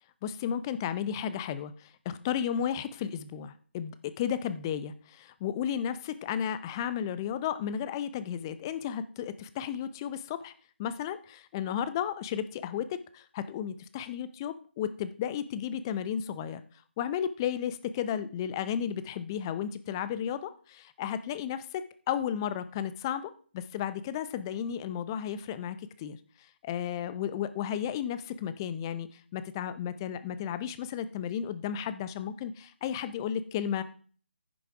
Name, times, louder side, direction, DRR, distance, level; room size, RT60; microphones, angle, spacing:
voice 1, 0.2-10.5 10.8-16.6 17.0-26.2 26.6-33.8, left 9 dB, 20° left, 13 dB, 0.5 m, -33 dB
10.0 x 6.8 x 4.8 m, 0.43 s
figure-of-eight pair, 150°, 6 cm